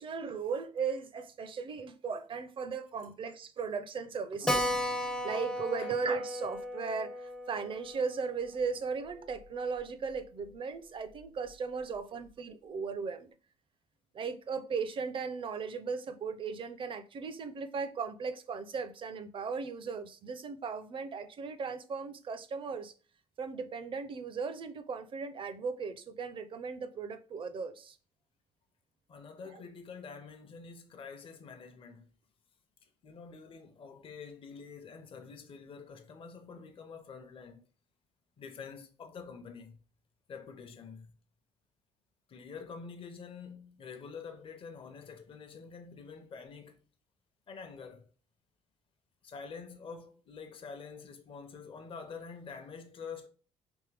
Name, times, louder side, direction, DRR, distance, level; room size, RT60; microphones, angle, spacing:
voice 1, 0.0-13.3 14.1-22.9 23.4-28.0 29.5-29.6, right 5 dB, 45° right, 0.6 m, -37 dB
Keyboard (musical), 4.5-9.5 9.8-9.9 10.2-10.3 10.5-10.6 11.2-11.5, left 1 dB, 5° left, 0.5 m, -36 dB
voice 2, 29.1-32.1 32.8-37.6 38.4-39.8 40.3-41.1 42.3-46.8 47.5-48.1 49.2-53.3, left 5 dB, 50° left, 0.7 m, -47 dB
3.5 x 3.1 x 3.3 m
cardioid pair, 85°, 12 cm